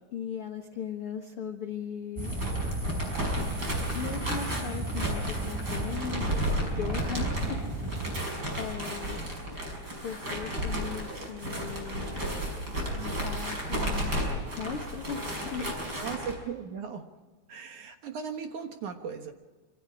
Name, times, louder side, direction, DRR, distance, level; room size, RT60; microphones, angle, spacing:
voice 1, 0.1-2.3 3.6-7.7 8.6-9.4 10.0-14.2 14.5-15.7 15.9-16.1, left 7 dB, 70° left, 3 dB, 1.3 m, -38 dB
sound 1, 2.2-8.2, right 1 dB, 5° right, 4.6 m, -35 dB
sound 2, 2.2-16.4, equal, 20° right, 6.0 m, -33 dB
voice 2, 16.0-17.1 17.5-19.3, right 6 dB, 60° right, 5 dB, 2.2 m, -37 dB
26.5 x 26.0 x 4.9 m, 1.3 s
omnidirectional pair, 5.0 m